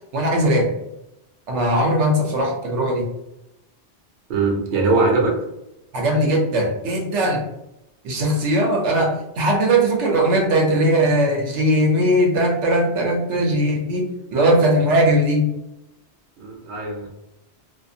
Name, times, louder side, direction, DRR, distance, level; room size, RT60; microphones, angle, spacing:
voice 1, 0.1-0.8 1.5-3.1 5.9-7.4 8.0-15.5, right 1 dB, 80° right, 0 dB, 1.0 m, -19 dB
voice 2, 4.3-5.3 16.4-17.1, right 3 dB, 50° right, -2 dB, 0.7 m, -20 dB
2.4 x 2.4 x 2.6 m, 0.87 s
omnidirectional pair, 1.2 m